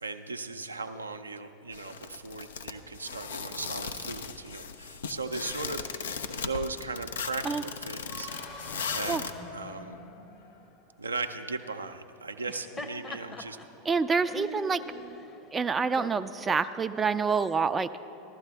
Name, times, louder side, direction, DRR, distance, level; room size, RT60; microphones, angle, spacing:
voice 1, 0.0-8.3 8.8-9.2 9.5-10.0 11.0-13.6, right 3 dB, 90° right, 7 dB, 0.4 m, -37 dB
sound 1, 1.7-9.3, left 6 dB, 75° left, 0.5 m, -37 dB
sound 2, 8.0-11.0, left 2 dB, 60° left, 1.7 m, -44 dB
Laughter, 12.3-17.6, left 1 dB, 20° left, 0.9 m, -43 dB
voice 2, 13.9-14.8 15.5-17.9, right 5 dB, 20° right, 10 dB, 0.3 m, -27 dB
15.5 x 12.0 x 3.4 m, 2.8 s
hypercardioid pair, 85°, 0 cm